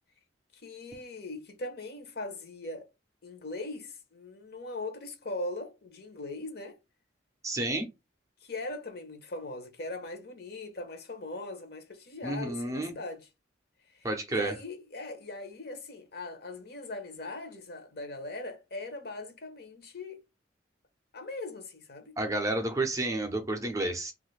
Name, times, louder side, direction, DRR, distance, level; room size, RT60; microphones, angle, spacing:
voice 1, 0.5-2.9 3.2-6.8 8.4-13.3 13.9-20.2 21.1-22.1, left 2 dB, 55° left, 0.8 m, -40 dB
voice 2, 7.4-7.9 12.2-12.9 14.0-14.5 22.2-24.1, right 2 dB, 15° right, 0.5 m, -30 dB
3.1 x 2.4 x 3.1 m
head